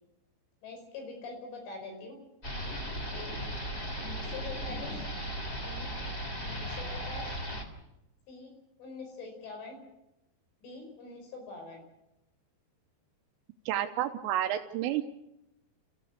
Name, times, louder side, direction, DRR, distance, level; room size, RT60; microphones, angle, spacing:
voice 1, 0.6-2.2 3.1-3.3 4.0-4.9 5.5-5.9 6.4-7.3 8.3-8.5 8.8-9.8 10.6-11.8, left 3 dB, 70° left, 3 dB, 7.5 m, -44 dB
sound 1, 2.4-7.6, equal, 15° left, 2.5 m, -36 dB
voice 2, 13.7-15.0, right 12 dB, 85° right, 3 dB, 3.6 m, -30 dB
28.5 x 15.5 x 8.1 m, 0.90 s
omnidirectional pair, 5.7 m